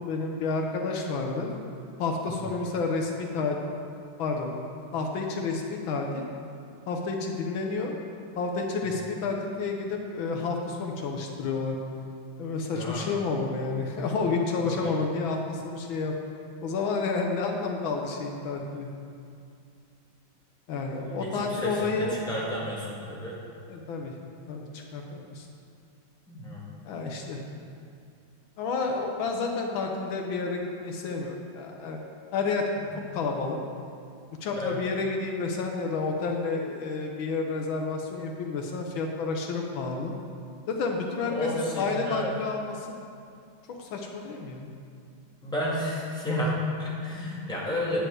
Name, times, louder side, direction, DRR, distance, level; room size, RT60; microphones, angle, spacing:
voice 1, 0.0-1.6 2.0-3.6 4.2-4.5 4.9-6.3 6.9-8.0 8.4-11.8 12.4-16.1 16.6-18.9 20.7-22.2 23.7-24.1 24.5-25.5 26.9-27.4 28.6-32.0 32.3-32.7 33.1-33.6 34.4-40.1 40.7-42.9 43.7-44.7, left 4 dB, 75° left, 2 dB, 1.6 m, -30 dB
voice 2, 12.7-13.1 14.6-14.9 21.2-23.4 26.3-26.7 32.8-32.9 34.5-34.8 41.2-42.3 45.4-48.0, left 1 dB, ahead, -7 dB, 2.0 m, -31 dB
9.9 x 5.1 x 7.8 m, 2.4 s
omnidirectional pair, 2.2 m